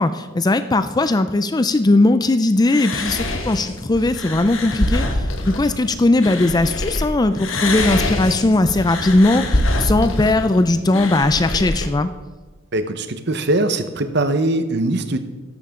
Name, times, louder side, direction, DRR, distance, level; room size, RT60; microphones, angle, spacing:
voice 1, 0.0-12.1, left 2 dB, 20° left, 11 dB, 0.4 m, -18 dB
sound 1, 2.7-7.1 7.4-11.9, left 1 dB, 85° left, 1.6 m, -24 dB
voice 2, 12.7-15.2, right 2 dB, 55° right, 9 dB, 1.0 m, -21 dB
14.0 x 11.5 x 3.7 m, 1.3 s
head